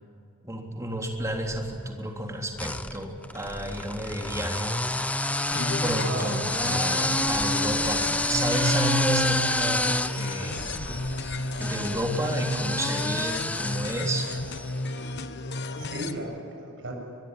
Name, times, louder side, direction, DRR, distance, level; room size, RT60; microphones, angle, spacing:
voice 1, 0.4-4.8 5.8-10.7 11.6-14.3, right 1 dB, 15° right, 1 dB, 3.4 m, -30 dB
sound 1, 1.2-1.8 2.6-14.9, left 2 dB, 5° left, 0.7 m, -29 dB
sound 2, 5.5-16.2, left 2 dB, 55° left, 1.2 m, -33 dB
voice 2, 6.0-6.3 6.7-6.8 15.8-16.9, right 1 dB, 60° right, 1 dB, 7.2 m, -35 dB
23.5 x 21.5 x 9.1 m, 2.5 s
head